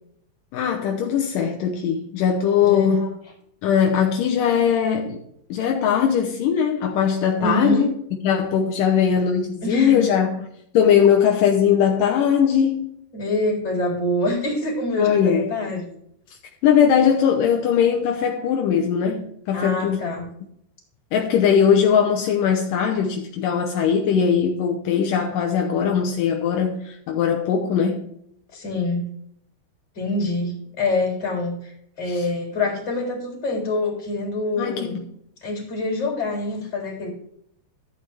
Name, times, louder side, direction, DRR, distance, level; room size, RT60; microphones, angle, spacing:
voice 1, 0.5-3.1 3.6-5.2 5.5-7.9 8.2-10.5 10.7-12.8 15.0-15.5 16.6-20.0 21.1-28.1 32.1-32.3 34.6-35.0, left 7 dB, 75° left, 2.0 m, -20 dB
voice 2, 2.6-3.1 7.4-7.9 9.6-10.0 13.1-15.9 19.5-20.3 28.5-29.1 30.0-35.0 35.4-37.1, left 2 dB, 25° left, 3.6 m, -25 dB
13.0 x 8.6 x 3.4 m
omnidirectional pair, 5.0 m